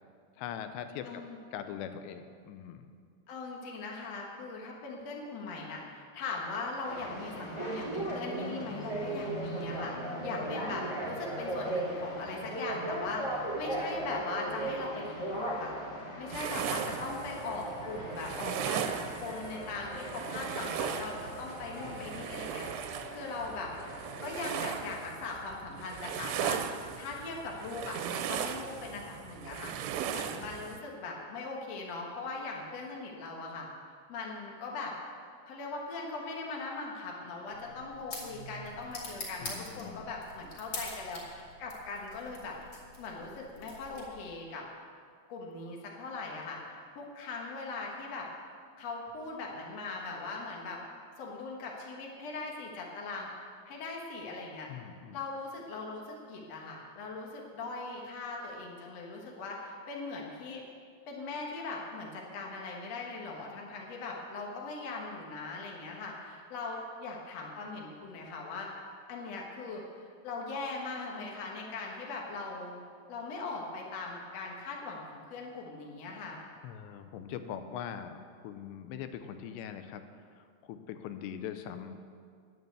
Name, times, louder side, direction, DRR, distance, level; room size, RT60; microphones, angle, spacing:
voice 1, 0.4-1.2 1.5-2.9 21.8-22.2 39.4-40.1 54.7-55.2 76.6-80.0 80.4-82.0, left 9 dB, 90° left, 9 dB, 2.9 m, -42 dB
voice 2, 1.0-1.4 3.3-9.9 10.2-15.7 16.2-23.7 24.2-29.7 30.1-33.7 34.1-34.9 35.5-42.6 43.0-44.6 45.3-48.3 48.8-50.8 51.2-53.3 53.7-54.7 55.1-60.6 61.1-68.7 69.1-72.8 73.1-76.4, left 3 dB, 60° left, -1 dB, 1.8 m, -40 dB
sound 1, 6.8-25.0, right 1 dB, 20° left, 1.1 m, -38 dB
sound 2, 16.3-30.8, right 9 dB, 85° right, 2.8 m, -38 dB
sound 3, 37.5-44.4, left 2 dB, 40° left, 2.9 m, -45 dB
11.0 x 9.5 x 7.9 m, 2.2 s
omnidirectional pair, 4.9 m